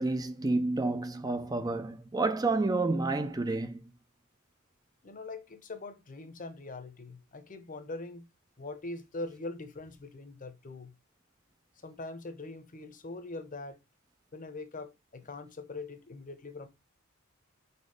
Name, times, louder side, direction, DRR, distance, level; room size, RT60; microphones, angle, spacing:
voice 1, 0.0-3.8, right 2 dB, 20° right, 0.5 m, -29 dB
voice 2, 5.0-8.3 8.6-10.9 11.8-13.8 14.3-16.7, left 2 dB, 40° left, 0.9 m, -42 dB
4.7 x 4.4 x 4.7 m
head